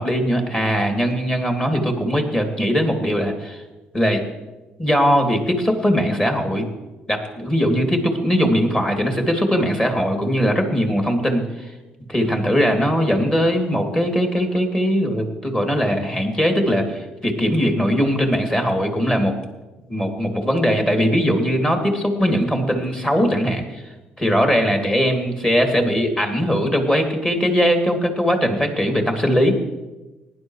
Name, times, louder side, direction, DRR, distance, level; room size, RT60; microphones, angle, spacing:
voice 1, 0.0-3.6 3.9-4.2 4.8-6.7 7.1-11.7 12.1-19.4 19.9-23.8 24.2-29.6, equal, 20° left, 3 dB, 2.9 m, -20 dB
19.0 x 10.5 x 3.3 m, 1.1 s
hypercardioid pair, 55°, 4 cm